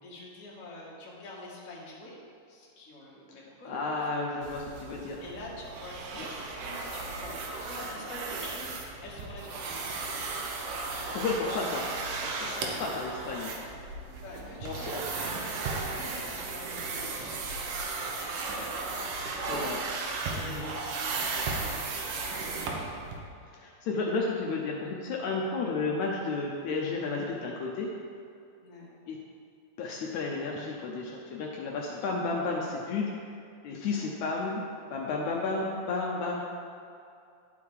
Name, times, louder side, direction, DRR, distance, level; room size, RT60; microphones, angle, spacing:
voice 1, 0.0-2.2 2.5-4.5 5.2-10.2 11.0-12.0 12.4-13.0 14.2-19.4 20.2-22.8 28.6-28.9 33.9-34.1, left 1 dB, 35° left, -5 dB, 1.3 m, -46 dB
voice 2, 3.7-5.2 6.2-6.3 10.9-11.8 12.2-12.5 12.8-13.5 14.6-15.0 19.5-19.8 20.4-20.7 23.5-27.9 29.1-29.2 29.8-33.1 33.6-34.6 34.9-36.4, left 3 dB, 75° left, -2 dB, 1.9 m, -32 dB
sound 1, 4.4-23.2, right 3 dB, 90° right, 2.6 m, -35 dB
11.0 x 5.5 x 4.8 m, 2.5 s
omnidirectional pair, 3.7 m